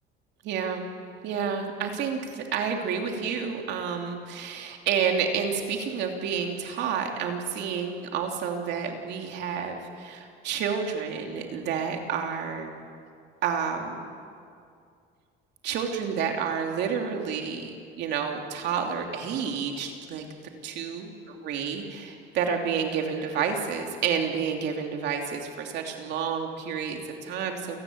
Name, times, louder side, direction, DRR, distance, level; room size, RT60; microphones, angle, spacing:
voice 1, 0.4-0.9 1.2-12.7 13.4-14.0 15.6-20.3 20.6-21.1 21.4-27.8, right 6 dB, 65° right, 3 dB, 3.0 m, -30 dB
28.5 x 18.5 x 8.7 m, 2.3 s
cardioid pair, 150°, 19 cm